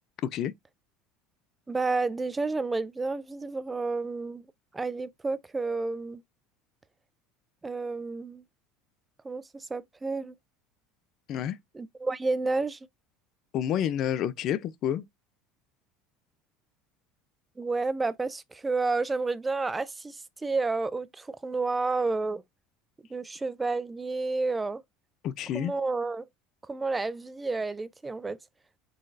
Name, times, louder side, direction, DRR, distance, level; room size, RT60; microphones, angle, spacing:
voice 1, 1.7-4.5 4.7-6.2 7.6-8.4 9.2-10.3 11.7-12.8 17.6-22.4 23.1-24.8 25.5-26.3 26.7-28.4, right 3 dB, 15° right, 0.3 m, -30 dB
voice 2, 13.5-15.0 25.2-25.7, left 10 dB, 55° left, 0.4 m, -29 dB
3.9 x 2.9 x 2.7 m
supercardioid pair, 95°, 0 cm